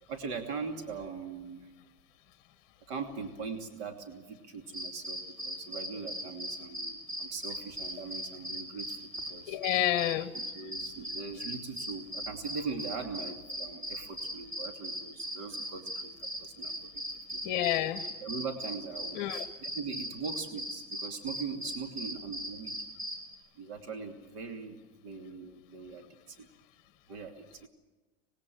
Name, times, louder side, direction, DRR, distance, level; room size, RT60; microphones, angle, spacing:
voice 1, 0.0-1.7 2.9-9.6 10.3-17.0 17.3-17.4 18.2-22.8 23.5-26.5 27.1-27.7, right 5 dB, 50° right, 4 dB, 2.9 m, -41 dB
sound 1, 4.7-9.4 9.6-23.3, equal, 25° right, 4.8 m, -38 dB
voice 2, 9.5-10.3 17.4-18.1 19.1-19.4, left 13 dB, 35° left, 12 dB, 1.1 m, -29 dB
26.0 x 20.5 x 7.8 m, 1.1 s
supercardioid pair, 170°, 44 cm